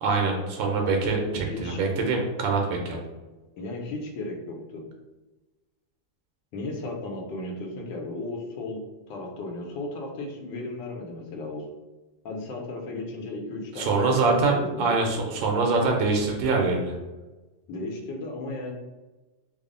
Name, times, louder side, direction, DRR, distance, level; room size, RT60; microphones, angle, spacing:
voice 1, 0.0-3.0 13.8-16.9, right 3 dB, 90° right, 1 dB, 1.4 m, -24 dB
voice 2, 1.3-1.8 3.6-4.8 6.5-8.8 9.1-11.6 12.2-14.9 17.7-18.7, left 2 dB, 80° left, 1 dB, 1.3 m, -35 dB
3.4 x 2.0 x 3.7 m, 1.2 s
omnidirectional pair, 2.0 m